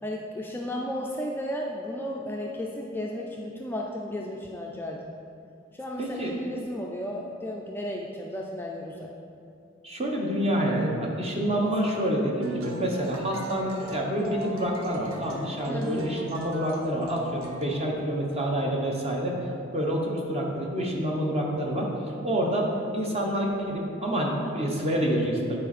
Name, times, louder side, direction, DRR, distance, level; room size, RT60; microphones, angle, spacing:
voice 1, 0.0-5.1 5.7-9.1 11.6-11.9 15.7-16.1, left 1 dB, 10° left, -1 dB, 0.3 m, -34 dB
voice 2, 6.0-6.3 9.8-19.3 19.7-21.9 22.2-25.6, equal, 30° right, -1 dB, 1.0 m, -27 dB
sound 1, 12.4-17.7, left 1 dB, 85° right, 0.7 m, -42 dB
9.0 x 4.3 x 4.2 m, 2.6 s
head